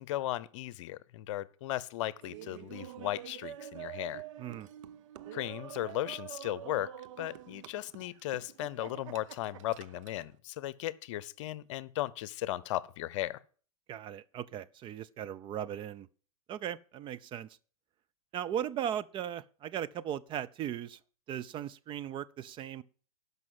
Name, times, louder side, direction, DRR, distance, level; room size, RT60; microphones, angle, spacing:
voice 1, 0.0-4.2 5.3-6.9 7.2-13.4, left 14 dB, 55° left, 0.8 m, -36 dB
Laughter, 2.2-10.3, right 12 dB, 55° right, 0.7 m, -47 dB
voice 2, 4.4-4.7 13.9-16.1 16.5-17.5 18.3-21.0 21.3-22.8, right 10 dB, 25° right, 0.5 m, -37 dB
12.0 x 5.5 x 7.5 m
hypercardioid pair, 105°, 19 cm